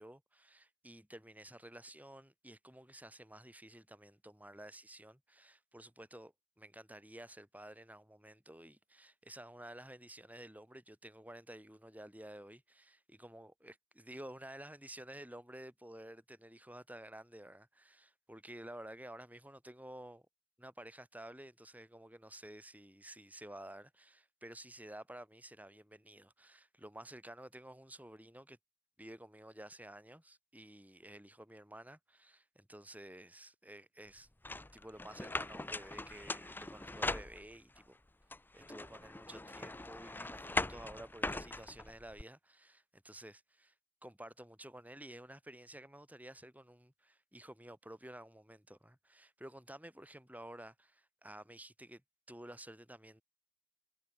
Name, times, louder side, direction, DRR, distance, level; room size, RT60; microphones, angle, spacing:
voice 1, 0.0-20.2 20.6-28.6 29.0-34.3 34.7-38.0 38.5-43.7 44.0-52.0 52.3-53.2, right 1 dB, 5° right, 5.7 m, -52 dB
sound 1, 34.4-37.8 38.3-42.2, left 2 dB, 10° left, 0.6 m, -40 dB
head